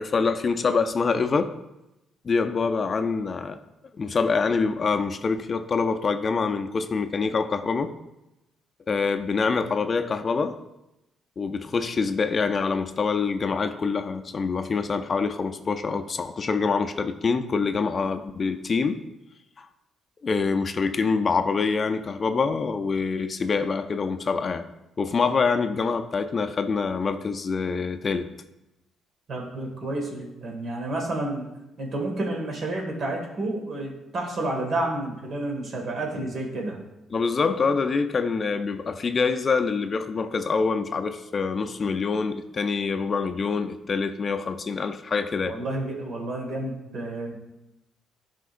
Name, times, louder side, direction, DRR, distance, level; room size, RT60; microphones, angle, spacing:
voice 1, 0.0-1.5 2.2-3.6 3.9-7.9 8.9-10.6 11.4-19.0 19.6-19.7 20.2-24.7 25.0-28.3 37.1-45.6, left 4 dB, 40° left, 7 dB, 0.5 m, -25 dB
voice 2, 29.3-31.5 31.8-36.8 45.5-47.3, right 2 dB, 55° right, 0 dB, 1.9 m, -30 dB
11.5 x 5.1 x 2.5 m, 0.92 s
cardioid pair, 90°, 0 cm